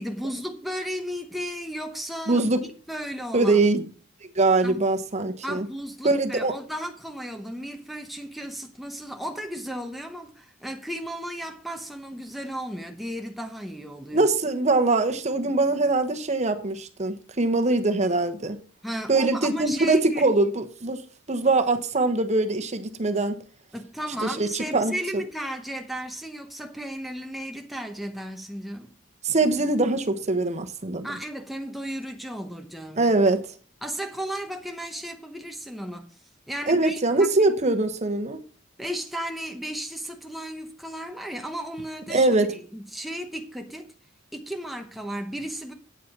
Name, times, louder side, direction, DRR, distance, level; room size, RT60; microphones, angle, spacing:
voice 1, 0.0-2.4 2.9-3.6 4.6-4.8 5.4-14.3 18.8-20.3 23.7-28.9 31.0-33.1 33.8-36.2 36.5-37.0 37.4-37.5 38.8-43.9 44.3-45.7, equal, ahead, 0.8 m, -34 dB
voice 2, 2.3-2.6 3.3-3.8 4.3-5.7 6.0-6.5 14.1-18.6 19.1-21.0 21.3-23.4 24.2-25.2 29.2-31.2 33.0-33.5 36.7-38.4 42.1-42.5, right 2 dB, 35° right, 1.1 m, -23 dB
8.9 x 8.2 x 6.0 m
head